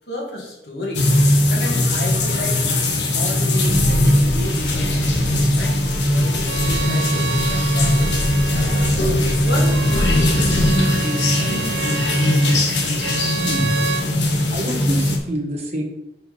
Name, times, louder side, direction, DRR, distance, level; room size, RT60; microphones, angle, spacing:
voice 1, 0.1-1.1 1.5-2.6 2.9-5.8 6.0-8.9 9.4-12.2, left 1 dB, 70° left, -2 dB, 2.2 m, -32 dB
sound 1, 0.9-15.2, left 1 dB, 85° left, 1.2 m, -19 dB
sound 2, 3.6-11.0, left 1 dB, 50° left, 0.7 m, -26 dB
Bowed string instrument, 6.4-14.1, right 6 dB, 70° right, 0.6 m, -30 dB
voice 2, 13.4-13.7 14.5-15.8, right 1 dB, 40° right, -1 dB, 1.5 m, -26 dB
6.0 x 4.5 x 5.1 m, 0.89 s
head